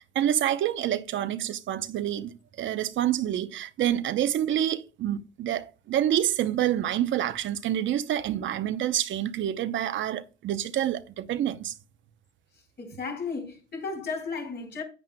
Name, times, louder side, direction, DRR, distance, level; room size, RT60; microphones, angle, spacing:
voice 1, 0.0-11.7, right 11 dB, 75° right, 0.7 m, -27 dB
voice 2, 12.8-14.8, left 4 dB, 55° left, 4.3 m, -34 dB
10.5 x 9.2 x 2.2 m
cardioid pair, 90°, 20 cm